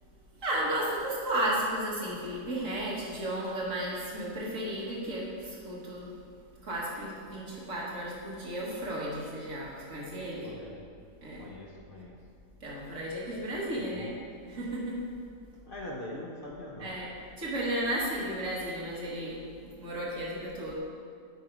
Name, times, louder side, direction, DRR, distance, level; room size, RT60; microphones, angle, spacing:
voice 1, 0.4-6.1 6.6-10.5 11.2-11.4 12.6-14.1 14.5-15.0 16.8-17.1 17.4-19.4 19.8-20.8, right 1 dB, 70° right, -5 dB, 2.0 m, -33 dB
voice 2, 10.4-10.9 11.4-12.3 13.8-14.1 15.6-17.0, left 1 dB, 45° left, -3 dB, 1.1 m, -43 dB
8.0 x 4.6 x 5.2 m, 2.3 s
omnidirectional pair, 1.4 m